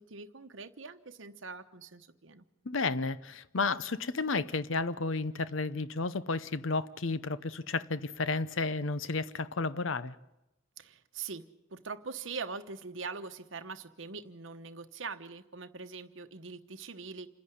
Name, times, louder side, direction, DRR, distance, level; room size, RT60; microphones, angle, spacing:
voice 1, 0.0-2.4 10.8-17.3, right 4 dB, 65° right, 1.1 m, -43 dB
voice 2, 2.7-10.1, left 3 dB, 70° left, 0.8 m, -32 dB
28.0 x 10.5 x 9.9 m
head